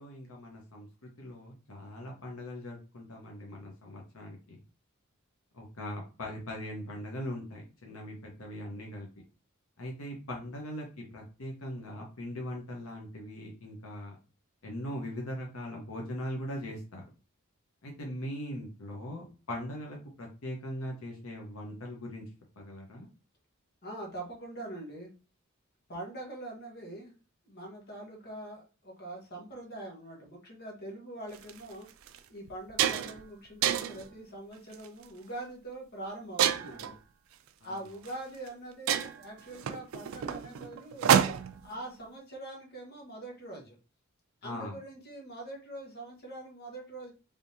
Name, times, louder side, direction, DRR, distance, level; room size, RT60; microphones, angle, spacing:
voice 1, 0.0-4.6 5.5-9.1 9.8-14.2 14.6-17.0 17.8-22.2 22.6-23.1 37.6-37.8 44.4-44.8, equal, 85° left, 0 dB, 1.0 m, -40 dB
voice 2, 23.8-25.1 25.9-27.1 27.4-31.9 32.3-37.0 37.6-41.1 41.6-43.8 44.4-47.1, right 1 dB, 50° left, 0 dB, 1.3 m, -43 dB
sound 1, 31.3-31.5 32.1-32.2 32.5-33.2 33.6-34.1 34.7-35.0 36.4-36.9 38.0-38.1 38.5-38.6 38.9-41.6, right 9 dB, 70° right, 0.4 m, -28 dB
3.5 x 3.4 x 2.7 m, 0.33 s
head